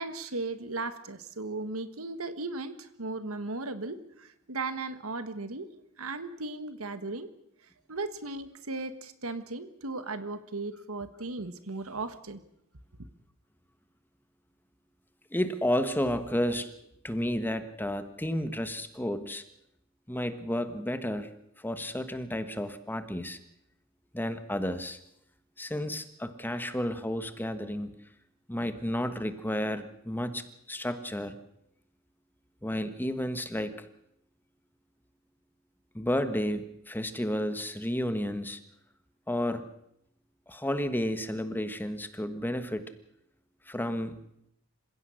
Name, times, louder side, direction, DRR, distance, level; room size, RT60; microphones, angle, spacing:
voice 1, 0.0-5.7 6.0-7.3 7.9-12.4, right 3 dB, 85° right, 11 dB, 1.6 m, -36 dB
voice 2, 15.3-16.8 17.0-19.4 20.1-21.3 21.6-23.4 24.1-25.0 25.6-27.9 28.5-31.4 32.6-33.9 35.9-38.6 39.3-39.7 40.5-42.9 43.7-44.2, left 1 dB, 10° left, 10 dB, 1.3 m, -32 dB
27.0 x 16.0 x 6.4 m, 0.80 s
head